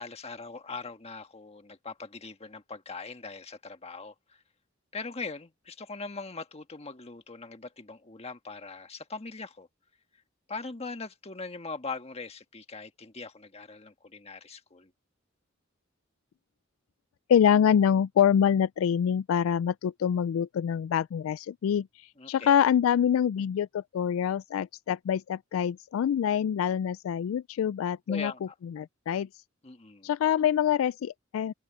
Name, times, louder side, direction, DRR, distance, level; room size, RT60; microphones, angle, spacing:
voice 1, 0.0-4.4 4.9-9.7 10.5-14.9 22.2-22.5 28.1-28.6 29.6-30.1, left 4 dB, 30° left, 1.5 m, -41 dB
voice 2, 17.3-28.3 28.6-29.3 30.0-31.5, left 8 dB, 90° left, 0.3 m, -25 dB
open air
head